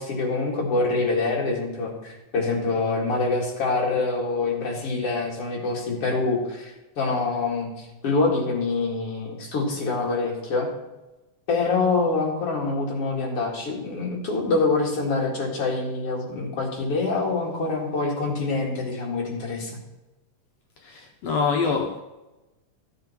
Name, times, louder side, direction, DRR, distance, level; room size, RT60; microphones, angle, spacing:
voice 1, 0.0-10.7 11.5-19.8, left 3 dB, 50° left, -2 dB, 2.9 m, -25 dB
voice 2, 20.8-22.0, left 5 dB, 70° left, 3 dB, 1.8 m, -25 dB
14.0 x 7.7 x 4.4 m, 1.1 s
omnidirectional pair, 3.5 m